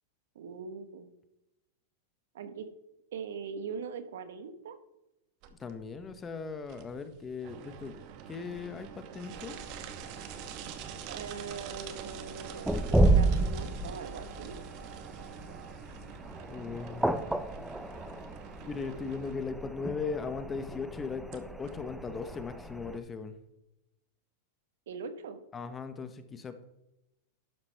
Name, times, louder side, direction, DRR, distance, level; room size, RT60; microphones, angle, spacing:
voice 1, 0.3-1.1 2.3-2.7 3.1-4.8 11.1-14.6 24.9-25.4, right 5 dB, 80° right, 9 dB, 1.1 m, -41 dB
sound 1, 5.4-22.5, right 9 dB, 50° right, 0.9 m, -46 dB
voice 2, 5.5-8.0 8.3-9.6 16.5-17.2 18.7-23.3 25.5-26.6, left 5 dB, 20° left, 10 dB, 0.8 m, -38 dB
sound 2, 9.3-23.0, right 2 dB, 5° right, 0.5 m, -33 dB
12.0 x 5.8 x 3.3 m, 0.90 s
hypercardioid pair, 125°, 0 cm